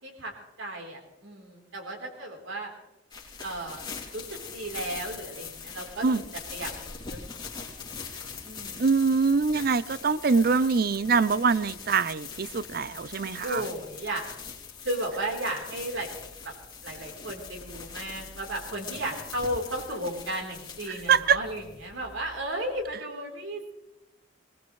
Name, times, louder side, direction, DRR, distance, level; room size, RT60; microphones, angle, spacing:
voice 1, 0.0-0.3 0.6-2.7 3.4-3.9 4.1-7.4 8.4-8.8 13.4-14.2 14.8-16.1 16.4-16.5 16.8-23.8, right 1 dB, 80° right, 0 dB, 3.8 m, -34 dB
sound 1, 3.1-22.9, left 5 dB, 25° left, 2.6 m, -42 dB
voice 2, 8.8-13.6 21.1-21.4, right 5 dB, 50° right, 17 dB, 0.5 m, -24 dB
20.0 x 19.5 x 3.2 m, 0.92 s
head